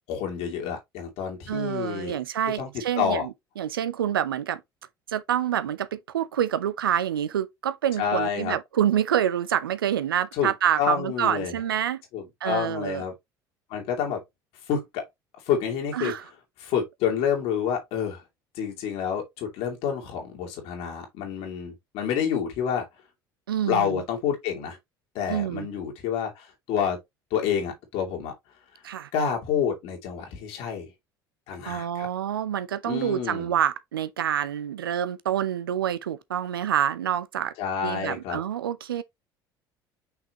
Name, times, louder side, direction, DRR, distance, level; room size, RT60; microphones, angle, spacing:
voice 1, 0.1-2.2 2.6-3.3 8.0-8.6 10.3-10.5 10.8-11.6 12.1-13.1 13.7-14.2 14.7-15.1 15.5-16.1 16.6-18.2 18.5-22.9 23.7-24.8 25.1-27.0 27.3-28.3 29.1-30.9 31.5-32.1 32.8-33.5 37.6-38.4, left 8 dB, 60° left, 2.6 m, -28 dB
voice 2, 1.5-4.6 5.1-12.0 12.4-13.0 15.9-16.2 23.5-24.0 25.3-25.7 28.8-29.1 31.7-37.5 37.8-39.0, right 10 dB, 80° right, 0.7 m, -27 dB
5.8 x 5.8 x 3.0 m
figure-of-eight pair, 60°, 12 cm